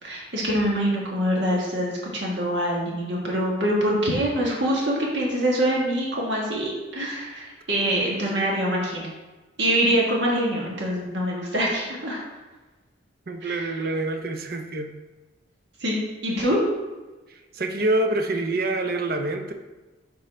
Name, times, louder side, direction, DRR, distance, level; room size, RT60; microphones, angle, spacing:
voice 1, 0.0-9.1 9.6-12.2 13.4-13.7 15.8-16.6, equal, 70° right, -3 dB, 1.5 m, -24 dB
voice 2, 13.3-14.9 17.3-19.5, right 2 dB, 50° right, 5 dB, 0.6 m, -26 dB
11.0 x 3.8 x 3.3 m, 1.2 s
head